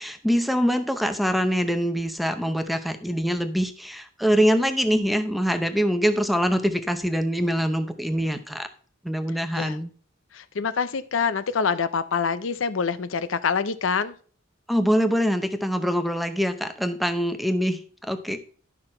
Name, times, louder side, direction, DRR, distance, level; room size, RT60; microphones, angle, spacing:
voice 1, 0.0-8.7 9.0-9.9 14.7-18.4, equal, ahead, 8 dB, 0.7 m, -24 dB
voice 2, 10.3-14.1, left 5 dB, 70° left, 13 dB, 0.6 m, -26 dB
11.5 x 5.9 x 4.4 m, 0.42 s
head